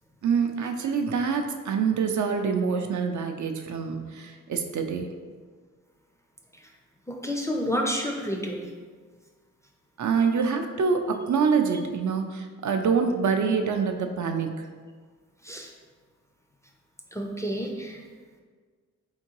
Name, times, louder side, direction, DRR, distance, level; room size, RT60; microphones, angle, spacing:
voice 1, 0.2-5.1 10.0-14.7, right 5 dB, 65° right, 5 dB, 0.5 m, -26 dB
voice 2, 7.1-8.7 15.4-15.7 17.1-18.0, equal, 10° left, 0 dB, 0.4 m, -30 dB
4.4 x 3.6 x 2.9 m, 1.5 s
wide cardioid pair, 140°, 31 cm